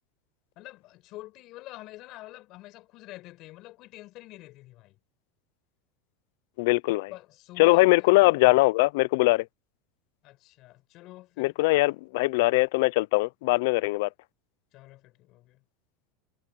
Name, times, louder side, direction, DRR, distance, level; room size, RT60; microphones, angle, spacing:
voice 1, 0.6-5.0 7.1-8.1 10.2-11.6 14.7-15.6, left 18 dB, 45° left, 6.8 m, -46 dB
voice 2, 6.6-7.1 7.6-9.5 11.4-14.1, left 22 dB, 65° left, 0.4 m, -21 dB
supercardioid pair, 155°, 0 cm